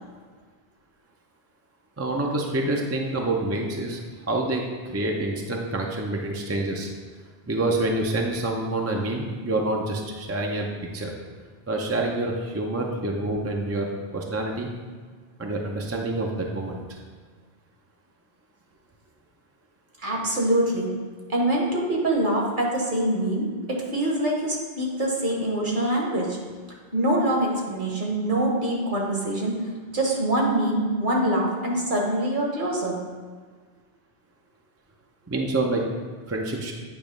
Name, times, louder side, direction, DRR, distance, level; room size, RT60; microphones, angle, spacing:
voice 1, 2.0-4.0 4.3-6.9 7.5-10.7 10.9-11.1 11.7-14.7 15.4-17.0 35.3-35.8 36.3-36.7, right 2 dB, 20° right, 0 dB, 0.5 m, -27 dB
voice 2, 20.0-20.9 21.3-26.4 26.9-29.6 29.9-33.0, right 1 dB, 55° right, -1 dB, 1.4 m, -24 dB
8.9 x 3.0 x 5.1 m, 1.5 s
omnidirectional pair, 1.0 m